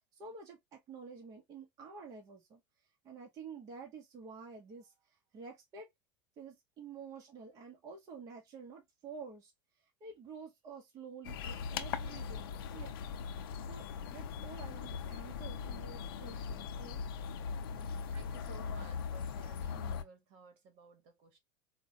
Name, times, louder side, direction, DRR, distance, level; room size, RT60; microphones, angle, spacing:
voice 1, 0.1-2.6 3.0-5.9 6.4-9.5 10.0-12.9 13.6-13.9 14.1-17.0 17.7-18.1, right 5 dB, 30° right, 0.8 m, -50 dB
sound 1, 11.2-20.0, left 6 dB, 90° left, 0.5 m, -40 dB
voice 2, 18.1-21.4, right 6 dB, 55° right, 1.1 m, -56 dB
4.3 x 2.1 x 2.6 m
supercardioid pair, 145°, 12 cm